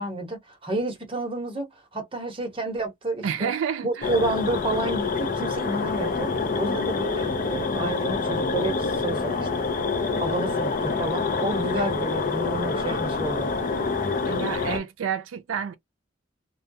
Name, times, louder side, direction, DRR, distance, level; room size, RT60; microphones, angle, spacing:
voice 1, 0.0-3.5 3.8-9.7 10.2-13.5, right 2 dB, 30° right, 0.9 m, -30 dB
voice 2, 3.2-4.1 14.3-15.7, right 7 dB, 85° right, 0.4 m, -29 dB
sound 1, 4.0-14.8, left 4 dB, 45° left, 0.5 m, -27 dB
2.3 x 2.2 x 2.6 m
head